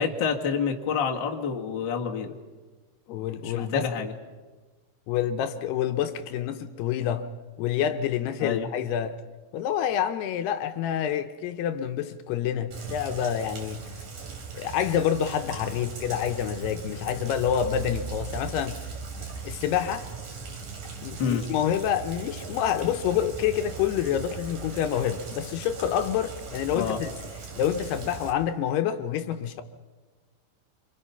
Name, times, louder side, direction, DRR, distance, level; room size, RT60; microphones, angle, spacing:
voice 1, 0.0-2.3 3.4-4.1 8.4-8.7 21.2-21.4 26.7-27.0, left 6 dB, 50° left, 1.3 m, -28 dB
voice 2, 3.1-3.9 5.1-7.3 7.6-9.2 9.5-13.8 14.5-18.8 19.3-20.1 21.0-27.1 27.6-29.6, left 9 dB, 75° left, 2.7 m, -27 dB
Rain, 12.7-28.3, right 5 dB, 50° right, 3.7 m, -39 dB
26.5 x 25.0 x 5.7 m
omnidirectional pair, 5.1 m